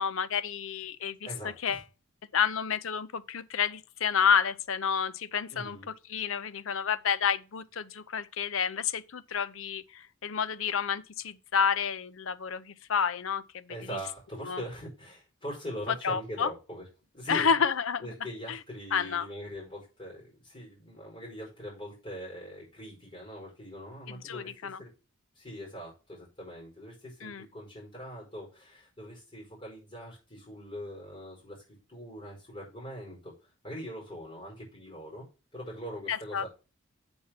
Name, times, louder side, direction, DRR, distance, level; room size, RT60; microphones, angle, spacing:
voice 1, 0.0-1.8 2.3-13.7 14.4-14.6 16.0-16.5 17.3-18.1 18.5-18.6 18.9-19.3 24.1-24.8 27.2-27.5 36.1-36.5, left 7 dB, 65° left, 0.6 m, -30 dB
voice 2, 1.2-1.8 5.5-5.9 13.7-16.8 17.1-17.6 18.0-24.9 25.3-31.6 31.9-33.3 33.6-35.3 35.5-36.5, equal, 25° left, 4.9 m, -42 dB
8.6 x 4.4 x 5.9 m
head